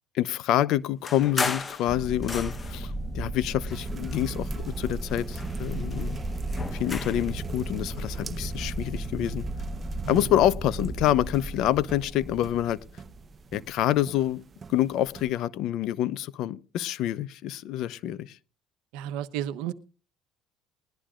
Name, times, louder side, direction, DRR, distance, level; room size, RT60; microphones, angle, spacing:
voice 1, 0.1-6.2 6.7-9.4 10.1-12.8 13.5-14.4 14.7-18.4, left 12 dB, 65° left, 0.7 m, -27 dB
sound 1, 1.0-2.9 3.6-4.8 5.1-7.3, left 4 dB, 25° left, 1.0 m, -35 dB
sound 2, 1.9-13.9 15.1-15.3, right 1 dB, 5° left, 5.5 m, -35 dB
sound 3, 3.7-15.3, right 5 dB, 30° right, 1.0 m, -45 dB
voice 2, 18.9-19.7, right 10 dB, 80° right, 0.9 m, -33 dB
21.0 x 11.5 x 2.5 m
supercardioid pair, 100°, 0 cm